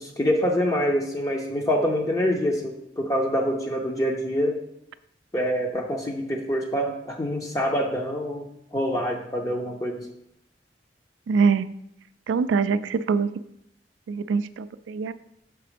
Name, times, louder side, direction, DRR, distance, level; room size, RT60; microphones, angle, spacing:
voice 1, 0.0-4.6 5.3-8.5 8.7-10.1, equal, 20° left, 1 dB, 0.5 m, -25 dB
voice 2, 11.3-11.7 12.3-13.3 14.1-15.1, right 5 dB, 85° right, 14 dB, 0.3 m, -23 dB
6.0 x 3.8 x 5.0 m, 0.78 s
head